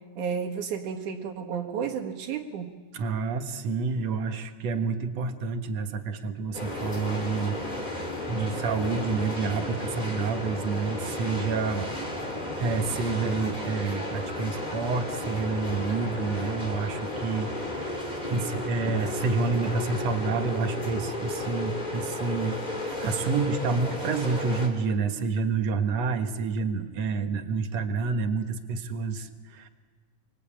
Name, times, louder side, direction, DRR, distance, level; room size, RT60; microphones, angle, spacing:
voice 1, 0.2-2.7, right 7 dB, 80° right, 2 dB, 3.3 m, -32 dB
voice 2, 2.9-7.6 8.3-11.9 12.6-29.7, right 4 dB, 60° right, 6 dB, 2.5 m, -29 dB
sound 1, 6.5-24.7, left 1 dB, 15° left, 3.2 m, -33 dB
25.5 x 24.5 x 8.7 m, 1.4 s
omnidirectional pair, 3.5 m